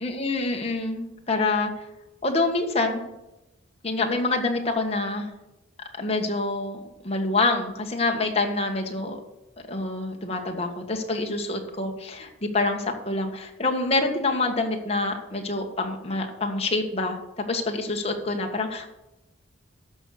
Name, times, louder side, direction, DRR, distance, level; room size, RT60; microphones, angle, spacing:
voice 1, 0.0-1.9 2.2-3.0 3.8-5.3 5.9-6.8 7.0-9.2 9.7-17.2 17.5-18.9, left 2 dB, 30° left, 2 dB, 1.6 m, -26 dB
13.5 x 5.5 x 6.6 m, 0.97 s
head